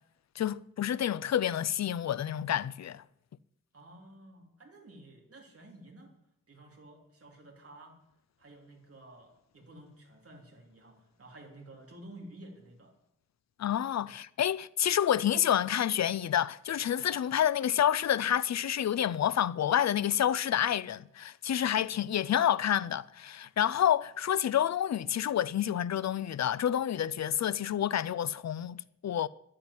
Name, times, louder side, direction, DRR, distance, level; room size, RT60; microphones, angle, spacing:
voice 1, 0.4-3.0 13.6-29.3, left 10 dB, 55° left, 0.5 m, -29 dB
voice 2, 3.7-6.1 6.5-8.0 8.4-12.9, right 1 dB, 45° right, 3.2 m, -52 dB
11.0 x 8.6 x 9.7 m
wide cardioid pair, 155°, 32 cm